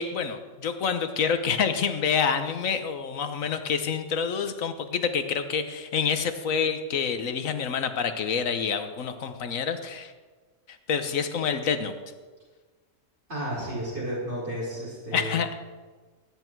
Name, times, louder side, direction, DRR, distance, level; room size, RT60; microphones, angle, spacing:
voice 1, 0.0-10.1 10.9-12.0 15.1-15.5, left 6 dB, 90° left, 9 dB, 1.4 m, -27 dB
voice 2, 13.3-15.3, right 1 dB, 55° right, -7 dB, 5.0 m, -32 dB
19.5 x 10.5 x 4.6 m, 1.4 s
omnidirectional pair, 1.3 m